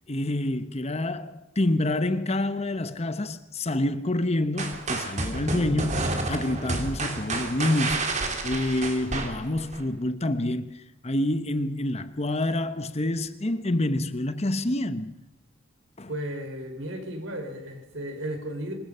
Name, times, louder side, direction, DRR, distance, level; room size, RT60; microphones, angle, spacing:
voice 1, 0.1-15.1 16.0-16.1, left 1 dB, 30° left, 1.0 m, -27 dB
sound 1, 4.6-9.8, right 2 dB, 35° right, 3.3 m, -30 dB
voice 2, 16.1-18.7, right 1 dB, 70° right, 5.6 m, -34 dB
26.5 x 21.5 x 5.6 m
head